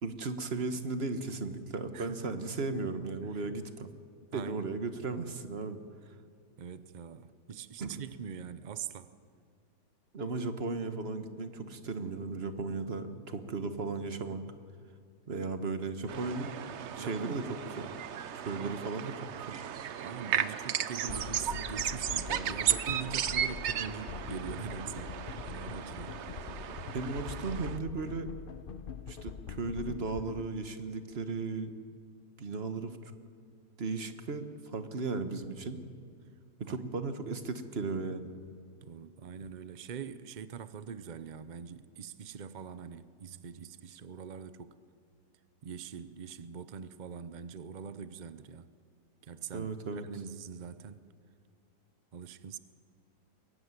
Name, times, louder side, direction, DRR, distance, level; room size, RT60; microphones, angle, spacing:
voice 1, 0.0-3.9 4.3-5.8 7.8-8.0 10.1-14.4 15.3-16.5 16.9-17.4 17.8-17.9 18.3-19.6 26.9-28.3 29.1-31.7 32.4-33.0 33.8-35.8 36.6-38.3 49.5-50.0, right 3 dB, 40° right, 1.4 m, -36 dB
voice 2, 1.9-2.4 3.2-3.6 4.3-4.7 6.6-9.1 17.0-17.5 18.5-18.9 20.0-26.2 36.7-36.9 38.8-44.7 45.6-48.7 49.2-51.1 52.1-52.6, right 7 dB, 75° right, 0.4 m, -43 dB
sound 1, 16.1-27.8, right 9 dB, 55° right, 0.8 m, -35 dB
sound 2, 21.1-30.5, left 7 dB, 65° left, 0.5 m, -43 dB
22.5 x 16.5 x 9.7 m
omnidirectional pair, 1.8 m